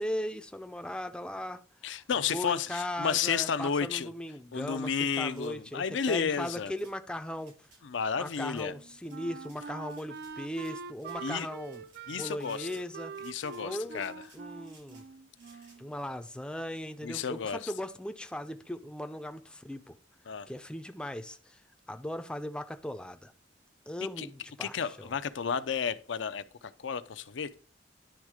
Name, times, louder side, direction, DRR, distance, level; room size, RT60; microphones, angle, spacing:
voice 1, 0.0-2.0 2.3-7.5 8.2-13.1 13.6-14.0 14.3-15.1 15.8-19.9 20.5-21.6 21.9-23.3 23.9-25.1, left 1 dB, 5° left, 0.4 m, -38 dB
voice 2, 1.8-4.1 4.5-6.7 7.8-8.7 11.2-11.5 12.1-12.7 13.2-14.2 17.0-17.7 20.3-20.5 24.2-24.3 24.6-26.4 26.8-27.5, left 6 dB, 75° left, 0.5 m, -32 dB
sound 1, 5.0-5.5 6.4-6.9 7.4-7.8 8.2-8.7 9.0-9.6 9.9-10.7 11.0-11.2 11.6-12.0 12.4-12.9 13.1-13.6 13.9-15.1 15.3-15.8, right 3 dB, 75° right, 4.7 m, -60 dB
Wind instrument woodwind instrument, 8.7-15.9, right 5 dB, 60° right, 0.4 m, -44 dB
10.5 x 3.6 x 4.8 m
head